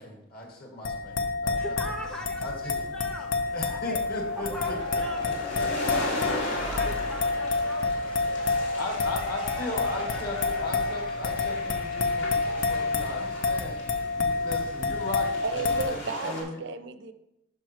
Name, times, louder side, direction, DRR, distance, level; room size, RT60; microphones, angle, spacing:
voice 1, 0.0-2.0 2.4-2.7 3.5-6.0 8.5-13.8 14.1-16.6, left 1 dB, 50° left, 0 dB, 1.8 m, -38 dB
sound 1, 0.8-15.8, left 3 dB, 90° left, 0.9 m, -29 dB
voice 2, 1.5-4.0 4.3-5.2 5.6-7.9 8.4-8.6, equal, 5° left, 2 dB, 0.5 m, -41 dB
sound 2, 2.2-16.4, left 1 dB, 70° left, 2.6 m, -39 dB
Cheering / Applause / Crowd, 4.2-13.2, left 1 dB, 25° left, 1.0 m, -41 dB
voice 3, 15.4-17.1, right 4 dB, 60° right, 10 dB, 0.5 m, -33 dB
12.0 x 5.1 x 3.2 m, 0.88 s
head